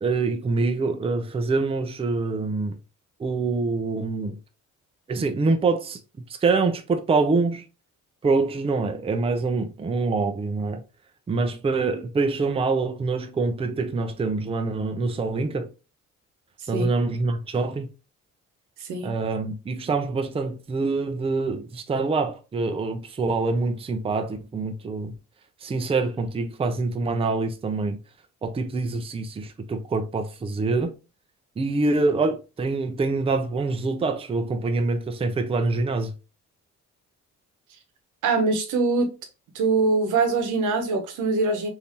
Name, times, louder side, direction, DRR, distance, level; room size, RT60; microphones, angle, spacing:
voice 1, 0.0-2.8 3.2-4.4 5.1-6.0 6.4-7.6 8.2-10.8 11.3-15.7 16.7-17.9 19.0-25.1 25.6-28.0 28.4-30.9 31.6-36.1, right 3 dB, 20° right, 0.5 m, -25 dB
voice 2, 18.8-19.1 38.2-39.1 39.5-41.7, right 3 dB, 80° right, 0.9 m, -23 dB
3.5 x 2.7 x 2.8 m
cardioid pair, 90°, 30 cm